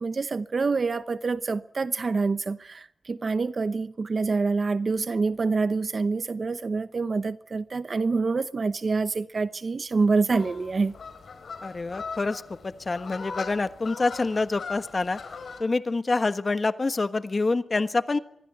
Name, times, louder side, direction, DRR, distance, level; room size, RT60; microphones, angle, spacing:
voice 1, 0.0-10.9, right 4 dB, 45° right, 0.9 m, -26 dB
sound 1, 10.3-15.6, left 5 dB, 70° left, 4.8 m, -40 dB
voice 2, 11.6-15.2 15.6-18.2, left 3 dB, 35° left, 1.3 m, -26 dB
25.5 x 21.5 x 8.1 m
wide cardioid pair, 155°, 0 cm